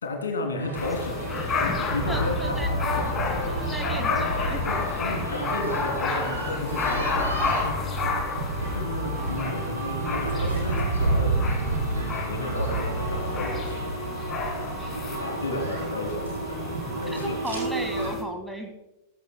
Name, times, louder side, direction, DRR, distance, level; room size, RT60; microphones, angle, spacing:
voice 1, 0.0-1.2 1.6-2.8 4.6-7.8 8.7-11.3 12.3-13.9 15.2-17.4, left 2 dB, 70° left, 2 dB, 2.9 m, -33 dB
sound 1, 0.6-18.1, right 3 dB, 75° right, 5.2 m, -30 dB
sound 2, 0.7-18.2, left 4 dB, 25° left, 2.5 m, -31 dB
voice 2, 2.1-2.7 3.4-4.7 17.1-18.7, equal, 5° right, 3 dB, 1.9 m, -35 dB
18.0 x 14.5 x 2.2 m, 0.95 s
figure-of-eight pair, 90°, 0 cm